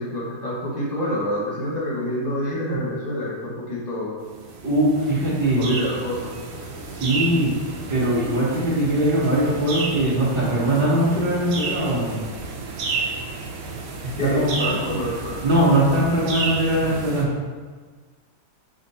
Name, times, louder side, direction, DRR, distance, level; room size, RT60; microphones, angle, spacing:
voice 1, 0.0-4.2 5.6-6.7 14.2-15.4, equal, 40° left, -5 dB, 0.6 m, -27 dB
sound 1, 4.2-17.2, right 4 dB, 75° right, 1.5 m, -32 dB
voice 2, 4.6-5.8 6.9-7.6 7.9-12.2 14.2-14.5 15.4-17.3, right 1 dB, 55° right, -11 dB, 1.4 m, -21 dB
5.2 x 2.5 x 4.1 m, 1.5 s
omnidirectional pair, 2.3 m